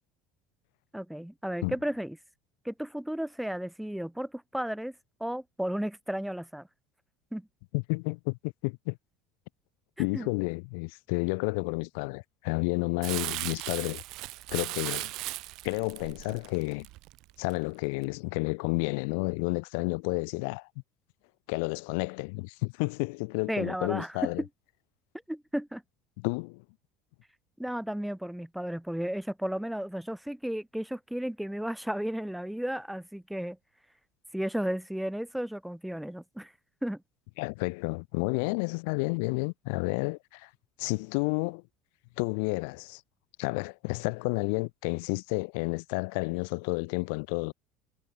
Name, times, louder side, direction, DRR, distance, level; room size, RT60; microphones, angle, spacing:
voice 1, 0.9-2.2 2.7-4.9 5.2-6.7 7.3-7.5 10.1-10.3 23.5-24.5 25.3-25.8 27.6-33.6 34.3-36.5 36.8-37.0, equal, ahead, 0.3 m, -33 dB
voice 2, 7.7-9.0 10.0-14.0 14.5-15.1 15.6-16.9 17.4-20.7 21.5-24.4 26.2-26.6 37.4-40.5 40.8-41.6 42.2-43.0 43.4-47.5, left 32 dB, 75° left, 0.7 m, -31 dB
Crumpling crinkling, 13.0-17.5 18.0-18.1, right 20 dB, 50° right, 1.1 m, -37 dB
cardioid pair, 175°, 0 cm